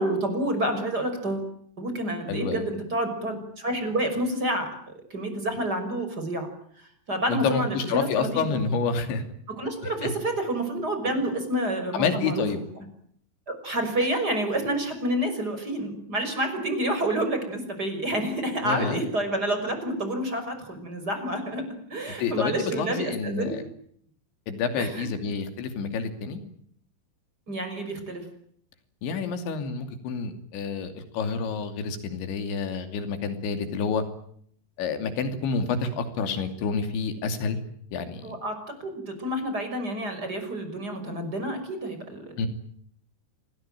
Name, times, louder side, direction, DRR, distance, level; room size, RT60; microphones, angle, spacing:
voice 1, 0.0-1.5 1.8-4.7 5.1-6.5 6.8-8.6 9.5-12.5 13.5-21.6 21.9-23.5 24.8-25.1 27.5-28.2 38.2-38.6 38.8-42.5, right 1 dB, 20° right, 7 dB, 6.0 m, -29 dB
voice 2, 2.3-2.6 7.3-9.2 10.0-10.1 11.9-12.6 18.6-19.0 22.2-23.6 24.5-26.4 29.0-34.0 34.8-37.6 37.9-38.3 42.4-42.5, left 5 dB, 75° left, 8 dB, 5.0 m, -28 dB
27.5 x 20.5 x 9.2 m, 0.65 s
omnidirectional pair, 5.2 m